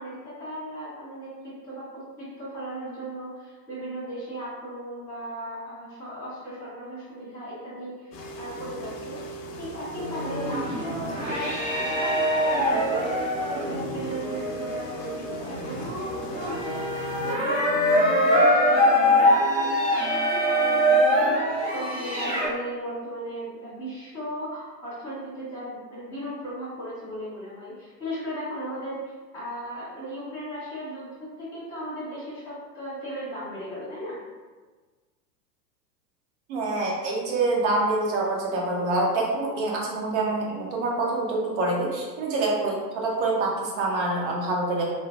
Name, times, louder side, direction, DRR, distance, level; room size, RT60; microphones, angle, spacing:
voice 1, 0.0-9.2 9.6-16.8 17.2-34.2, equal, 5° left, -10 dB, 1.4 m, -36 dB
sound 1, 8.1-17.4, right 1 dB, 75° left, 0.6 m, -39 dB
sound 2, 9.9-22.5, equal, 25° right, 1.3 m, -24 dB
voice 2, 36.5-44.8, right 2 dB, 45° right, -3 dB, 0.8 m, -26 dB
3.2 x 2.1 x 2.3 m, 1.3 s
figure-of-eight pair, 95°, 49 cm